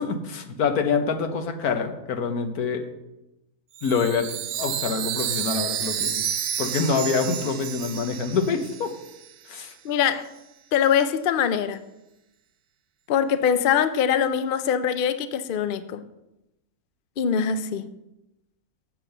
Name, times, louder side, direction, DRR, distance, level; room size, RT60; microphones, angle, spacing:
voice 1, 0.0-2.9 3.8-4.3 4.5-6.2 6.6-8.9 9.5-9.7, left 5 dB, 90° left, 6 dB, 1.5 m, -26 dB
Chime, 3.8-9.3, right 9 dB, 85° right, 1.2 m, -30 dB
voice 2, 9.8-10.3 10.7-11.8 13.1-16.0 17.2-17.9, left 8 dB, 60° left, 12 dB, 0.5 m, -23 dB
7.6 x 7.4 x 6.6 m, 0.93 s
omnidirectional pair, 1.6 m